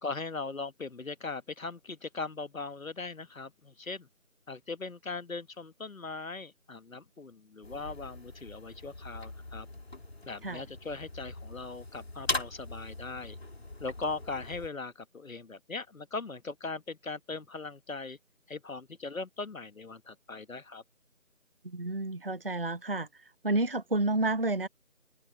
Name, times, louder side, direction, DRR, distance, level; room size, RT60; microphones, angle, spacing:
voice 1, 0.0-4.1 4.5-9.7 10.3-13.4 13.8-18.2 18.5-20.8, left 3 dB, 80° left, 1.3 m, -39 dB
sound 1, 7.6-14.7, left 2 dB, 50° left, 2.7 m, -40 dB
voice 2, 21.6-23.1 23.4-24.7, right 2 dB, 45° right, 0.8 m, -30 dB
figure-of-eight pair, 175°, 41 cm